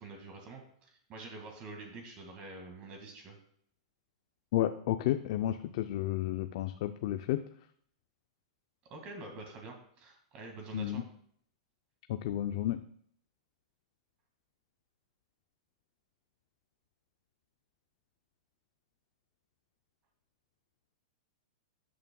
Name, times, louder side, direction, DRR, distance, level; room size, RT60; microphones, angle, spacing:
voice 1, 0.0-3.4 8.9-11.0, right 3 dB, 35° right, 3 dB, 2.0 m, -47 dB
voice 2, 4.5-7.4 10.7-11.0 12.1-12.8, left 13 dB, 55° left, 9 dB, 0.5 m, -32 dB
13.0 x 8.6 x 2.3 m, 0.63 s
hypercardioid pair, 145°, 3 cm